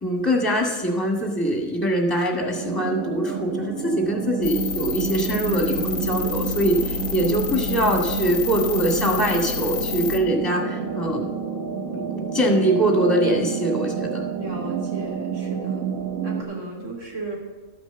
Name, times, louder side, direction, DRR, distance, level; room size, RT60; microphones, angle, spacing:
voice 1, 0.0-11.4 11.8-14.3, right 1 dB, 15° left, 1 dB, 1.8 m, -23 dB
sound 1, 2.5-16.4, right 6 dB, 85° right, 1.8 m, -29 dB
sound 2, 4.4-10.2, left 6 dB, 60° left, 0.9 m, -29 dB
voice 2, 14.3-15.9 16.2-17.4, right 2 dB, 65° right, -2 dB, 3.2 m, -35 dB
12.5 x 6.1 x 6.9 m, 1.3 s
omnidirectional pair, 1.4 m